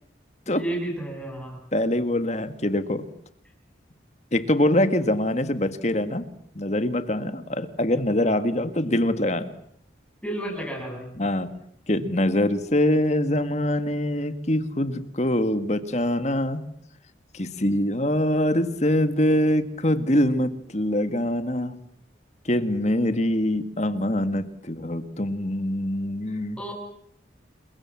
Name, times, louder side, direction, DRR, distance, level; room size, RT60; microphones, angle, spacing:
voice 1, 0.5-1.6 10.2-11.1 26.6-26.7, right 1 dB, 5° left, 1 dB, 7.4 m, -31 dB
voice 2, 1.7-3.1 4.3-6.3 6.6-9.5 11.2-11.5 11.9-16.7 17.3-21.8 22.5-26.6, left 1 dB, 35° left, 10 dB, 1.8 m, -24 dB
29.0 x 22.5 x 7.4 m, 0.68 s
head